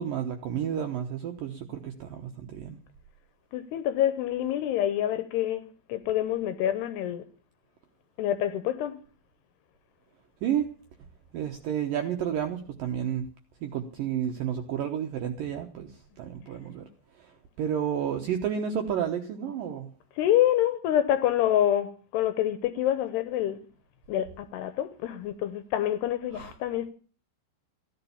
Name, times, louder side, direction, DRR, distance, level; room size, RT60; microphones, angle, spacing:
voice 1, 0.0-2.8 10.4-10.7 11.3-13.2 13.6-16.9 17.6-19.9 26.3-26.5, right 9 dB, 75° right, 2.1 m, -31 dB
voice 2, 3.5-7.2 8.2-9.0 20.2-23.6 24.1-26.9, left 11 dB, 75° left, 2.6 m, -27 dB
15.5 x 11.5 x 7.1 m
omnidirectional pair, 5.4 m